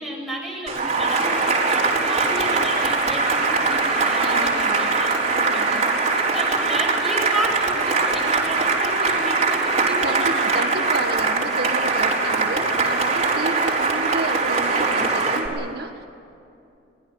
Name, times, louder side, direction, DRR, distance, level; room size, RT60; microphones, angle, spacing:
voice 1, 0.0-10.9, equal, ahead, -3 dB, 7.7 m, -32 dB
Cheering / Applause, 0.7-15.5, right 3 dB, 40° right, 4.6 m, -21 dB
voice 2, 4.2-4.9 5.2-5.8 10.0-16.0, right 2 dB, 65° right, 4 dB, 1.7 m, -31 dB
24.5 x 20.0 x 8.1 m, 2.6 s
head